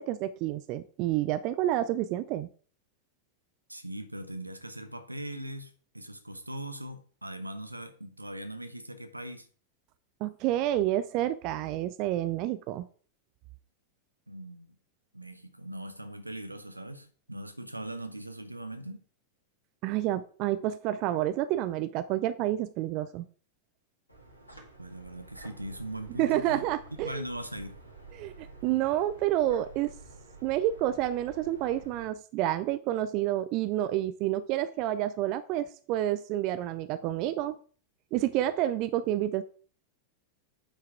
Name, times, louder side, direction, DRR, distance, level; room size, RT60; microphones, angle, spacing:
voice 1, 0.0-2.5 10.2-12.9 19.8-23.2 26.2-27.2 28.2-29.9 30.4-37.6 38.1-39.4, right 13 dB, 40° right, 0.5 m, -29 dB
voice 2, 3.7-9.5 14.3-14.7 15.1-19.0 24.8-26.7 27.0-27.8, right 1 dB, 85° right, 1.0 m, -40 dB
sound 1, 24.1-32.1, right 3 dB, 85° left, 2.0 m, -50 dB
8.8 x 4.8 x 4.6 m
figure-of-eight pair, 90°, 0 cm